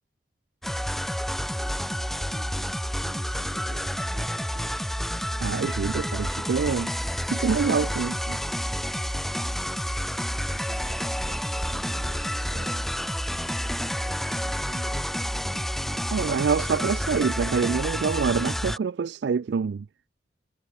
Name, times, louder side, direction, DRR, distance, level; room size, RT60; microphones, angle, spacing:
sound 1, 0.6-18.8, equal, ahead, 0.7 m, -29 dB
voice 1, 1.4-5.0 9.4-10.2 10.5-12.9 13.3-15.8, right 1 dB, 45° right, 1.7 m, -48 dB
voice 2, 5.4-6.9 7.3-8.4 16.1-19.9, right 6 dB, 85° right, 0.4 m, -26 dB
head